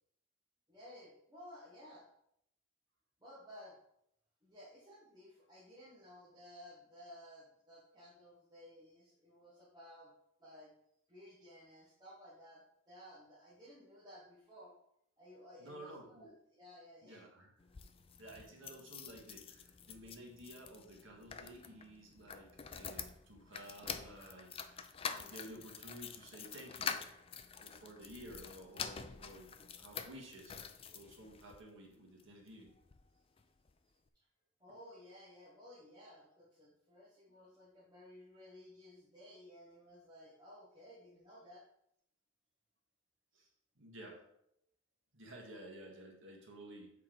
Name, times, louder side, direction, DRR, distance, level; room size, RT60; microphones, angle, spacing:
voice 1, 0.7-2.1 3.2-3.8 4.4-10.1 10.4-10.7 11.1-14.7 15.2-17.2 34.6-41.6, left 1 dB, 20° right, -8 dB, 1.4 m, -56 dB
voice 2, 15.6-16.3 17.0-17.5 18.2-26.9 27.6-29.5 29.8-30.6 30.9-32.7 43.3-43.5 43.7-44.2 45.1-46.9, right 1 dB, 85° right, 0 dB, 1.7 m, -53 dB
sound 1, 17.6-31.6 32.2-33.1 33.4-33.5 33.7-33.8, left 6 dB, 30° left, 0.4 m, -47 dB
7.4 x 4.2 x 3.9 m, 0.73 s
head